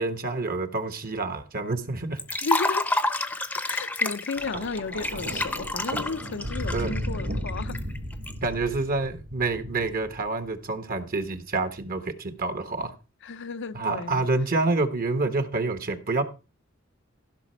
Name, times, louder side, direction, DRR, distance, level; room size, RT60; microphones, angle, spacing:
voice 1, 0.0-2.4 6.7-7.0 8.4-12.9 13.7-16.2, right 3 dB, 45° right, 1.3 m, -28 dB
Liquid, 2.2-8.3, left 2 dB, 5° left, 0.8 m, -29 dB
voice 2, 2.4-7.8 13.2-14.3, left 4 dB, 60° left, 0.7 m, -34 dB
Thunder, 4.4-10.7 11.7-12.0, equal, 65° right, 2.6 m, -35 dB
15.0 x 6.0 x 4.4 m
head